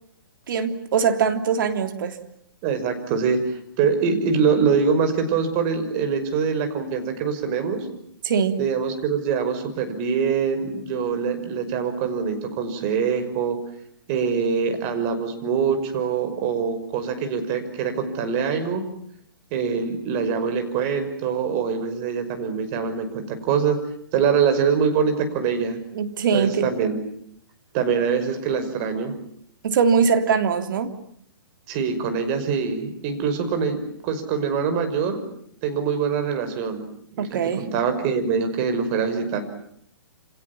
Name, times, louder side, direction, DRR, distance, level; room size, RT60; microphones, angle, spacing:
voice 1, 0.5-2.2 8.2-8.6 25.9-26.6 29.6-30.9 37.2-37.7, right 6 dB, 60° right, 7 dB, 3.3 m, -22 dB
voice 2, 2.6-7.9 8.6-13.6 14.1-18.8 19.5-23.8 24.1-25.8 26.3-27.0 27.7-29.1 31.7-35.2 35.6-36.9 37.2-39.4, right 6 dB, 35° right, 7 dB, 5.7 m, -24 dB
28.5 x 27.5 x 7.3 m, 0.69 s
hypercardioid pair, 130°, 13 cm